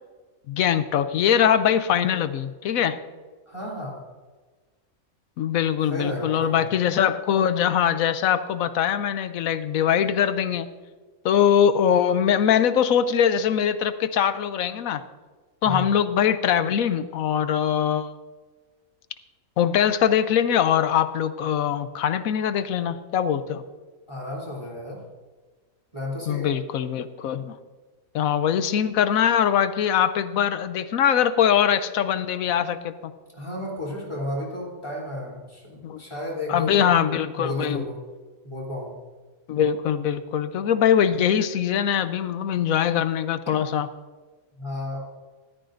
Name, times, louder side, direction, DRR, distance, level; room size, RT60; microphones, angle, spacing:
voice 1, 0.5-3.0 5.4-10.7 11.2-15.0 15.6-18.1 19.6-23.6 26.3-27.6 28.1-32.9 35.8-36.0 36.5-37.8 39.5-43.9, left 9 dB, 70° left, 12 dB, 1.0 m, -22 dB
voice 2, 3.5-4.0 5.9-6.6 15.6-16.0 24.1-25.0 25.9-26.5 33.3-38.0 38.4-39.0 44.5-45.0, left 1 dB, 20° left, -3 dB, 3.2 m, -32 dB
14.0 x 12.5 x 2.6 m, 1.3 s
omnidirectional pair, 1.5 m